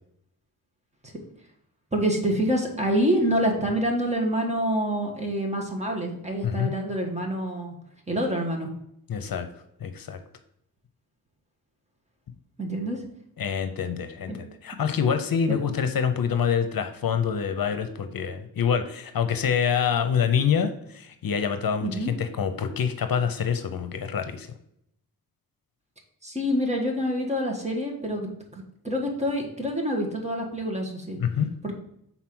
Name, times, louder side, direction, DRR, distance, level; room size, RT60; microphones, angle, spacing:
voice 1, 1.9-7.7 8.1-8.7 12.6-13.0 14.3-14.4 15.5-15.6 21.8-22.1 26.2-31.2 31.6-31.7, equal, 20° right, 1 dB, 1.5 m, -27 dB
voice 2, 9.1-9.5 9.8-10.2 13.4-24.5 31.2-31.5, left 7 dB, 70° left, 8 dB, 0.7 m, -26 dB
5.7 x 4.1 x 6.1 m, 0.74 s
wide cardioid pair, 105°, 36 cm